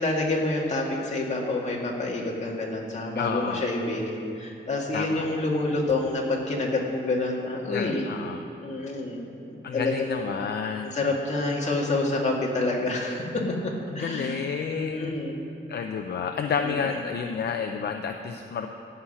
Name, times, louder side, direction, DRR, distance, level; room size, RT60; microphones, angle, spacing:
voice 1, 0.0-8.0 8.6-10.0 10.9-14.4 14.7-15.3 16.6-16.7, left 2 dB, 35° left, -2 dB, 2.0 m, -28 dB
voice 2, 3.1-3.6 4.9-5.3 7.7-8.5 9.6-10.9 13.9-15.2 15.7-18.7, left 6 dB, 60° left, 5 dB, 0.6 m, -30 dB
14.5 x 5.8 x 9.9 m, 2.7 s
wide cardioid pair, 175°, 20 cm